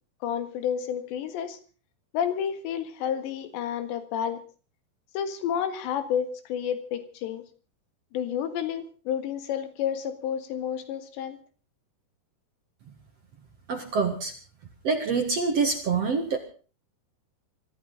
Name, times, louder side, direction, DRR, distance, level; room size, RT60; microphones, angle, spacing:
voice 1, 0.2-1.6 2.1-4.4 5.1-7.4 8.1-11.4, left 8 dB, 80° left, 10 dB, 3.9 m, -30 dB
voice 2, 13.7-14.3 14.8-16.4, right 4 dB, 50° right, 5 dB, 2.1 m, -26 dB
24.0 x 14.5 x 3.9 m, 0.37 s
omnidirectional pair, 5.1 m